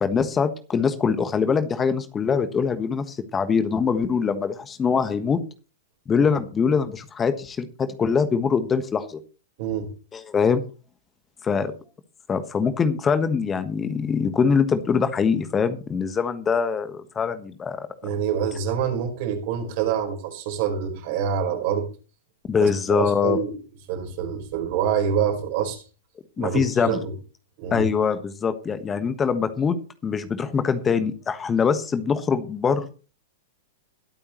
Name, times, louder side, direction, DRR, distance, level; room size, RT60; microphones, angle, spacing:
voice 1, 0.0-5.4 6.1-9.2 10.1-10.6 11.4-11.7 12.3-17.9 22.5-23.4 26.4-27.0 27.7-29.8 30.0-32.9, left 6 dB, 20° left, 10 dB, 1.4 m, -23 dB
voice 2, 9.6-9.9 18.0-21.9 22.6-23.6 23.9-25.8 26.4-27.1 27.6-27.9, right 8 dB, 50° right, 3 dB, 4.7 m, -26 dB
21.0 x 8.7 x 3.1 m, 0.35 s
hypercardioid pair, 105°, 0 cm